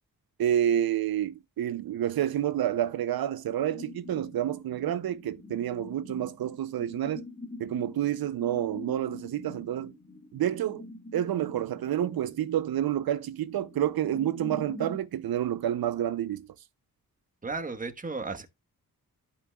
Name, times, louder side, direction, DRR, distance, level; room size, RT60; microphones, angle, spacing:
voice 1, 0.4-7.2 7.6-9.9 10.3-10.8 11.1-16.5, right 11 dB, 80° right, 0.6 m, -29 dB
sound 1, 3.6-15.1, left 2 dB, 25° left, 1.6 m, -46 dB
voice 2, 17.4-18.5, right 3 dB, 25° right, 1.3 m, -34 dB
14.0 x 5.5 x 2.3 m
wide cardioid pair, 135°, 36 cm